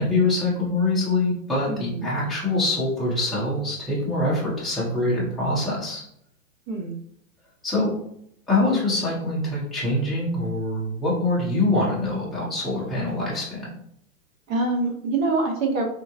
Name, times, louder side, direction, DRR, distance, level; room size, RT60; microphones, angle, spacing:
voice 1, 0.0-6.0 7.6-7.9 8.5-13.7, left 2 dB, ahead, -9 dB, 0.4 m, -24 dB
voice 2, 1.7-2.1 6.7-6.9 14.5-15.8, right 3 dB, 60° right, 2 dB, 1.0 m, -25 dB
3.6 x 2.0 x 2.7 m, 0.70 s
hypercardioid pair, 135°, 45 cm